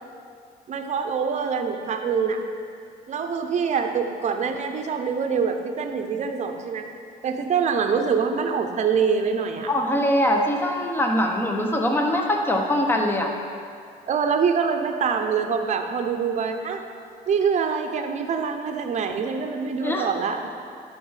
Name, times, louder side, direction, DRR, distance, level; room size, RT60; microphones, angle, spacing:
voice 1, 0.7-2.5 3.1-6.9 7.2-9.7 14.1-16.8 17.3-20.5, right 6 dB, 45° right, 5 dB, 0.8 m, -25 dB
voice 2, 9.7-13.3 19.8-20.1, left 1 dB, 10° left, 1 dB, 1.0 m, -22 dB
10.5 x 4.3 x 5.6 m, 2.4 s
cardioid pair, 110°, 17 cm